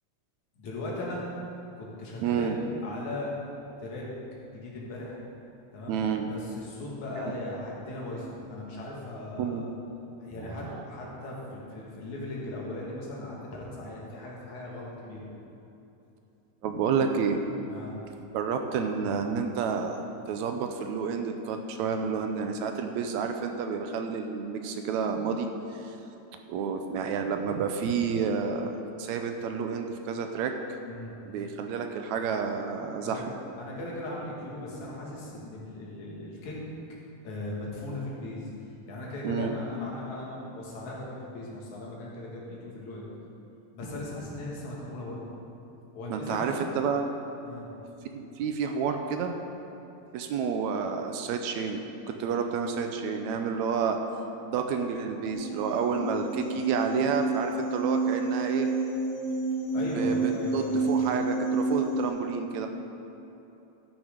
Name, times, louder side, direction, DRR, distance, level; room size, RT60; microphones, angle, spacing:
voice 1, 0.6-1.3 1.7-3.4 3.8-4.1 4.5-5.2 5.7-6.0 6.3-9.6 10.2-15.3 16.6-16.7 17.7-18.0 30.9-31.1 33.0-33.2 33.6-36.6 37.2-38.5 38.9-43.1 43.7-45.2 45.9-46.5 47.4-47.7 59.7-60.9, left 1 dB, 75° left, -4 dB, 3.2 m, -38 dB
voice 2, 2.2-2.6 5.9-6.3 7.2-7.3 9.4-9.7 10.4-10.9 16.6-17.4 18.3-25.5 25.8-25.9 26.5-30.6 31.3-33.3 39.2-39.5 46.1-47.1 48.1-49.4 50.1-54.0 54.4-58.7 60.0-62.7, right 6 dB, 80° right, 5 dB, 1.9 m, -30 dB
sound 1, 55.3-62.1, right 3 dB, 55° left, 2.5 m, -29 dB
12.5 x 6.7 x 5.1 m, 2.9 s
omnidirectional pair, 3.4 m